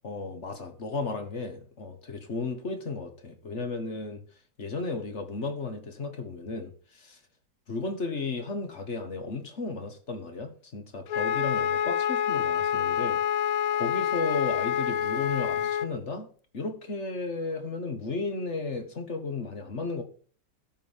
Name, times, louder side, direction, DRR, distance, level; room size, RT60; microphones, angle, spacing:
voice 1, 0.0-4.2 4.6-7.2 7.7-13.2 13.7-16.3 16.5-20.0, left 3 dB, 40° left, 7 dB, 1.6 m, -34 dB
Wind instrument woodwind instrument, 11.1-15.9, left 9 dB, 65° left, 0.9 m, -27 dB
12.5 x 5.1 x 7.3 m, 0.44 s
omnidirectional pair, 2.0 m